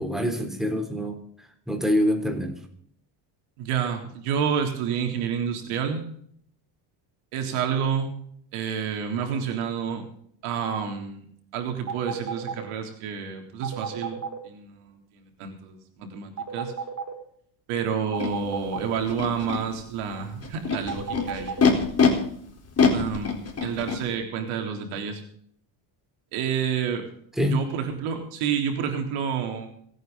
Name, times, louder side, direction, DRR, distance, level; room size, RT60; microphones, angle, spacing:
voice 1, 0.0-2.6 27.4-27.6, left 1 dB, ahead, 3 dB, 3.5 m, -26 dB
voice 2, 3.6-6.0 7.3-8.2 8.5-10.1 10.4-11.3 11.5-16.7 17.7-21.7 22.9-25.2 26.3-27.1 27.5-29.7, right 7 dB, 80° right, 4 dB, 3.7 m, -29 dB
sound 1, 11.9-12.6 13.6-14.4 16.4-17.1 18.1-18.9 20.9-21.6, right 6 dB, 35° right, 4.2 m, -32 dB
Animal, 18.2-18.3 19.1-19.6 20.4-22.1 22.8-24.0, left 6 dB, 30° left, 4.1 m, -22 dB
26.5 x 9.3 x 4.0 m, 0.64 s
supercardioid pair, 95°, 50 cm